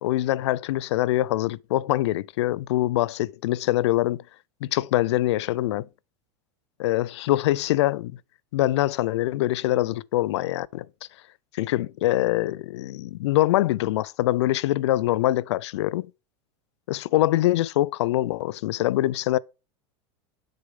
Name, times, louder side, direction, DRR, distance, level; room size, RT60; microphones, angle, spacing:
voice 1, 0.0-4.2 4.6-5.9 6.8-8.1 8.5-10.9 11.5-16.1 16.9-19.4, left 16 dB, 80° left, 0.4 m, -24 dB
7.8 x 6.5 x 3.6 m
supercardioid pair, 115°, 14 cm